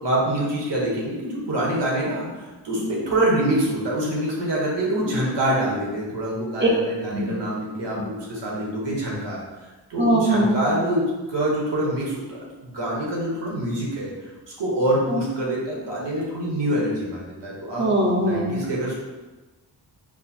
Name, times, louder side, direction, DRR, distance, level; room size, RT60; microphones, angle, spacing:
voice 1, 0.0-9.4 9.9-14.1 14.6-17.9 18.2-18.9, right 1 dB, 85° right, -4 dB, 1.3 m, -25 dB
voice 2, 10.0-10.6 17.8-18.6, right 1 dB, 25° right, -1 dB, 0.8 m, -21 dB
4.8 x 2.0 x 4.3 m, 1.2 s
wide cardioid pair, 95°, 41 cm